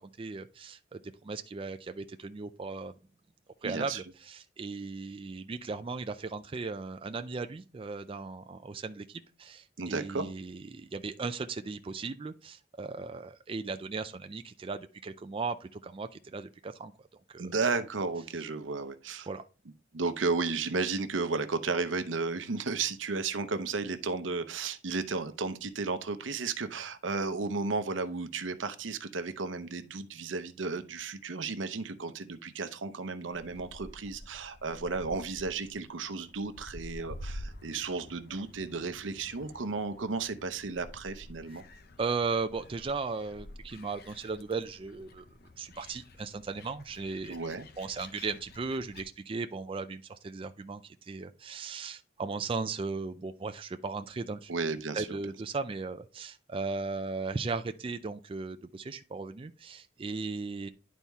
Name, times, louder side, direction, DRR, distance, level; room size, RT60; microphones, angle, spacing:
voice 1, 0.0-3.0 3.6-16.9 17.3-17.4 19.3-19.5 42.0-45.2 45.6-47.3 47.8-54.5 54.9-60.7, right 4 dB, 30° right, 0.4 m, -37 dB
voice 2, 3.6-4.0 9.8-10.3 17.4-19.3 19.9-41.6 47.3-47.7 54.5-55.2, right 4 dB, 80° right, 0.7 m, -33 dB
Gull seagull, 33.3-49.0, left 1 dB, 55° left, 0.7 m, -49 dB
11.0 x 4.2 x 3.5 m
head